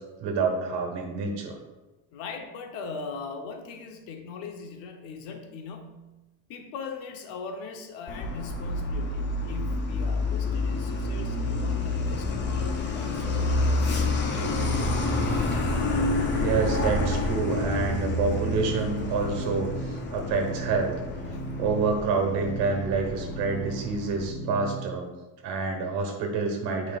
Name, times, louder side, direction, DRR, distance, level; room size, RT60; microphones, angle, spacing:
voice 1, 0.2-1.6 16.3-20.9 21.6-25.1 25.4-27.0, right 4 dB, 65° right, 3 dB, 1.3 m, -28 dB
voice 2, 2.1-6.1 6.5-14.6 21.3-21.4, left 5 dB, 85° left, 4 dB, 0.9 m, -40 dB
Truck, 8.1-24.3, left 2 dB, 25° left, 0.5 m, -28 dB
sound 1, 16.0-24.9, right 3 dB, 10° left, 2.0 m, -37 dB
8.6 x 4.9 x 2.4 m, 1.1 s
cardioid pair, 165°, 43 cm